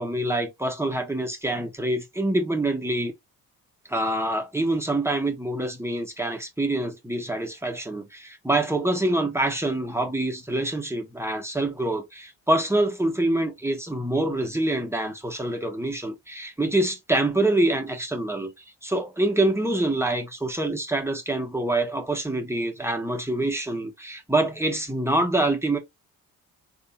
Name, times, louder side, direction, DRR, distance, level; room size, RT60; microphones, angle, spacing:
voice 1, 0.0-3.1 3.9-18.5 18.8-25.8, right 1 dB, 5° right, 1.2 m, -26 dB
3.4 x 2.8 x 2.2 m
hypercardioid pair, 45°, 42 cm